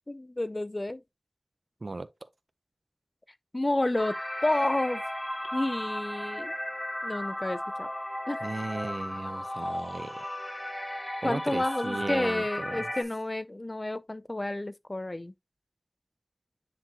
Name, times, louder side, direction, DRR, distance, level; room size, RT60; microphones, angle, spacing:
voice 1, 0.1-1.0 3.5-4.2 4.4-5.0 5.5-6.5 7.0-7.9 8.3-8.5 11.2-15.3, left 1 dB, 40° left, 0.4 m, -30 dB
sound 1, 4.0-13.0, left 1 dB, 15° left, 2.7 m, -35 dB
voice 2, 8.4-10.2 11.2-12.9, right 2 dB, 75° right, 0.6 m, -36 dB
9.9 x 3.6 x 2.9 m
wide cardioid pair, 50°, 0 cm